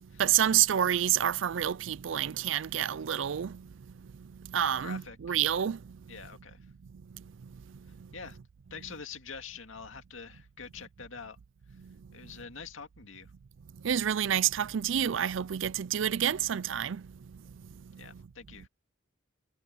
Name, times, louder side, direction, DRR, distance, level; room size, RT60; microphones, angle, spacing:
voice 1, 0.2-3.6 4.5-5.8 13.8-17.0, right 10 dB, 70° right, 0.4 m, -28 dB
voice 2, 4.8-5.4 6.1-6.6 8.1-8.4 8.7-11.4 12.1-13.3 18.0-18.7, left 5 dB, 90° left, 2.2 m, -45 dB
head